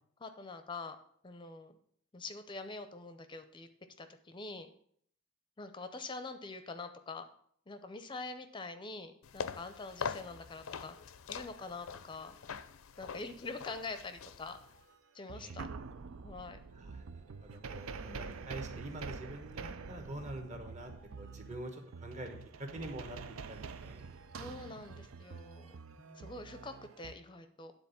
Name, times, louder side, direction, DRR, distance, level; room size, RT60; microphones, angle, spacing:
voice 1, 0.2-1.0 1.2-1.8 2.1-3.7 4.0-4.7 5.6-7.3 7.7-11.0 11.3-12.3 13.0-14.6 15.1-15.7 16.2-16.6 18.1-18.4 24.4-25.8 26.2-27.7, left 3 dB, 25° left, 9 dB, 0.5 m, -45 dB
sound 1, 9.2-14.9, left 6 dB, 80° left, 0.5 m, -44 dB
sound 2, 14.8-14.9 15.3-27.1, right 4 dB, 80° right, 0.5 m, -46 dB
voice 2, 16.7-24.0 26.0-26.3, right 1 dB, 35° right, 4 dB, 1.3 m, -46 dB
9.6 x 4.1 x 6.9 m, 0.64 s
head